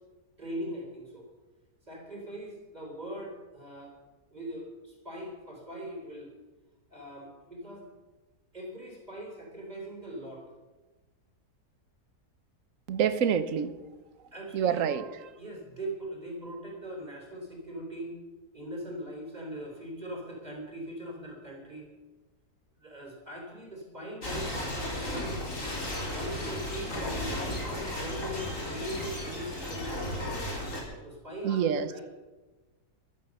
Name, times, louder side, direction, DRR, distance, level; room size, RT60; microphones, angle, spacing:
voice 1, 0.4-1.3 1.8-4.0 4.3-6.3 6.9-7.9 8.5-10.5 14.3-14.9 15.3-18.2 18.5-21.9 22.8-24.6 25.1-25.5 26.1-30.3 31.0-32.0, right 1 dB, 25° right, 0 dB, 4.8 m, -40 dB
voice 2, 12.9-13.7 14.5-15.3 31.4-31.9, right 8 dB, 55° right, 13 dB, 1.3 m, -27 dB
sound 1, 24.2-30.8, left 1 dB, 50° left, 4.0 m, -34 dB
15.0 x 13.0 x 6.8 m, 1.2 s
omnidirectional pair, 1.7 m